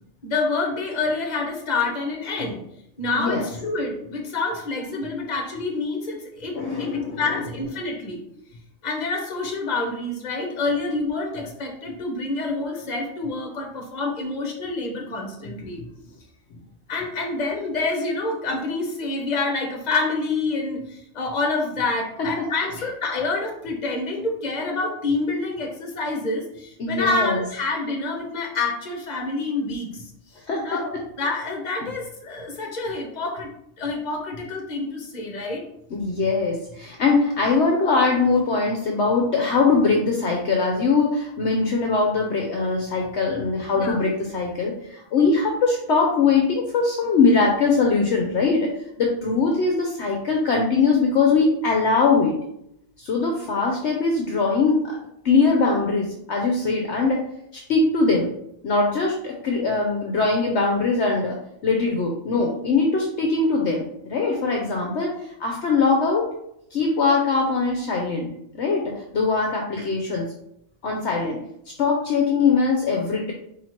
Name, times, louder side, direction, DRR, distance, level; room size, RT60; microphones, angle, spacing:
voice 1, 0.2-2.6 3.0-6.9 7.2-8.2 8.8-15.8 16.9-30.0 30.6-33.5 33.8-35.6 43.7-44.0, left 3 dB, 35° left, 1 dB, 1.0 m, -27 dB
voice 2, 3.1-3.4 6.5-7.4 22.2-22.6 26.8-27.4 30.5-30.8 35.9-48.7 49.0-52.4 53.0-55.0 55.2-57.3 57.5-58.3 58.6-66.3 66.7-68.3 68.5-70.3 70.8-71.4 71.8-73.3, left 4 dB, 65° left, 0 dB, 0.9 m, -21 dB
4.3 x 2.8 x 4.3 m, 0.77 s
omnidirectional pair, 1.4 m